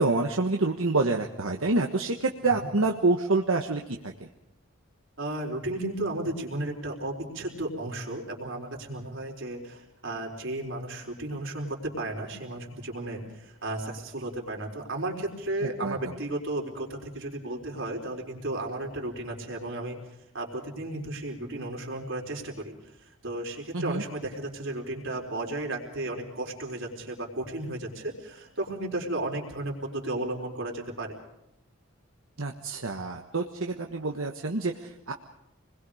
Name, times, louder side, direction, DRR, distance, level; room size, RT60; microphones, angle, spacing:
voice 1, 0.0-4.3 15.6-16.2 23.7-24.0 32.4-35.1, right 3 dB, 80° right, 2 dB, 1.4 m, -27 dB
voice 2, 5.2-20.0 20.3-22.7 23.0-31.2, right 1 dB, 65° right, 0 dB, 4.4 m, -34 dB
28.0 x 21.5 x 5.0 m, 0.83 s
head